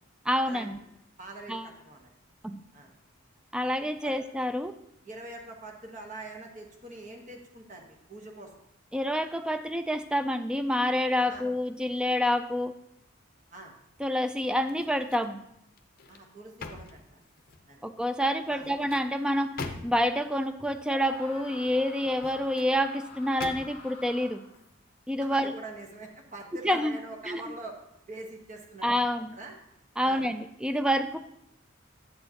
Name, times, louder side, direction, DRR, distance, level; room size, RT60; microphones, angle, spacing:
voice 1, 0.3-0.8 1.5-1.7 2.4-2.6 3.5-4.8 8.9-12.7 14.0-15.4 17.8-24.4 25.1-25.5 26.6-27.0 27.3-27.4 28.8-29.4 30.0-31.2, equal, 5° right, 9 dB, 0.3 m, -28 dB
voice 2, 1.2-2.1 2.7-2.9 3.8-4.1 5.0-8.5 11.3-11.4 13.5-13.7 16.1-17.2 17.7-17.8 18.5-18.6 25.3-27.7 28.1-29.6 30.0-30.2, right 2 dB, 40° right, 2 dB, 1.2 m, -44 dB
sound 1, 14.6-15.4 15.8-17.7 18.5-20.2 22.0-22.7 23.4-24.0 24.5-24.7, left 3 dB, 45° left, 0.6 m, -43 dB
Screaming, 20.8-24.6, left 3 dB, 30° left, 1.5 m, -48 dB
8.4 x 7.7 x 2.9 m, 0.80 s
head